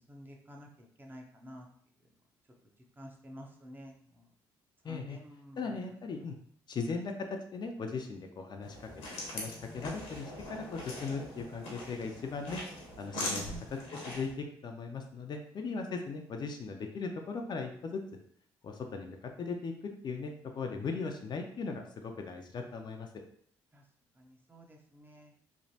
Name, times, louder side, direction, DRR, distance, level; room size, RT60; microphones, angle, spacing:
voice 1, 0.1-1.7 3.0-4.3 4.8-5.8 6.7-6.9 13.1-13.7 23.7-23.8 24.2-25.3, right 1 dB, 20° right, 1 dB, 0.7 m, -49 dB
voice 2, 4.8-5.2 5.6-6.3 6.7-8.8 9.1-12.6 13.0-13.5 13.9-18.0 18.6-19.7 20.0-23.1, left 4 dB, 45° left, 4 dB, 0.4 m, -38 dB
sound 1, 8.6-14.3, left 2 dB, 85° left, 0.9 m, -41 dB
3.1 x 2.1 x 2.7 m, 0.63 s
supercardioid pair, 60°, 10 cm